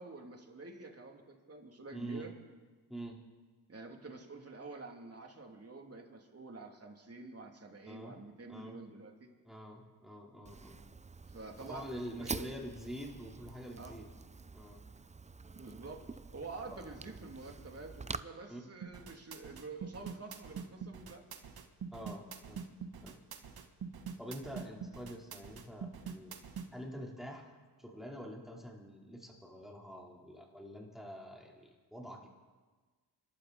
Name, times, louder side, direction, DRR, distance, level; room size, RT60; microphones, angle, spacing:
voice 1, 0.0-2.3 3.7-9.3 11.3-12.4 13.8-14.0 15.5-16.0 16.3-21.2, right 3 dB, 35° right, 2 dB, 3.3 m, -48 dB
voice 2, 1.9-2.3 2.9-3.2 7.9-8.2 8.5-8.8 9.4-10.8 11.6-14.1 14.5-14.8 18.5-18.6 21.9-22.6 23.0-23.2 24.2-26.3 26.7-32.3, equal, ahead, -2 dB, 4.3 m, -46 dB
Fire, 10.4-18.2, right 4 dB, 15° right, 0.6 m, -46 dB
sound 1, 18.8-26.7, right 6 dB, 60° right, 1.7 m, -44 dB
26.5 x 12.0 x 4.4 m, 1.4 s
supercardioid pair, 55°, 42 cm